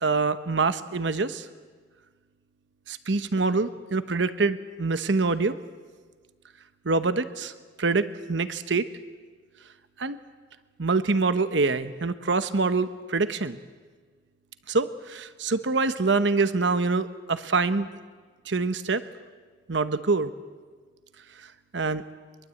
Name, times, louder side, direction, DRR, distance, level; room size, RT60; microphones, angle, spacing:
voice 1, 0.0-1.5 2.9-5.6 6.8-7.5 7.8-8.9 10.0-10.2 10.8-13.6 14.7-17.9 18.5-19.0 19.7-20.3 21.7-22.0, right 3 dB, 80° right, 12 dB, 1.0 m, -25 dB
22.5 x 22.5 x 8.4 m, 1.5 s
head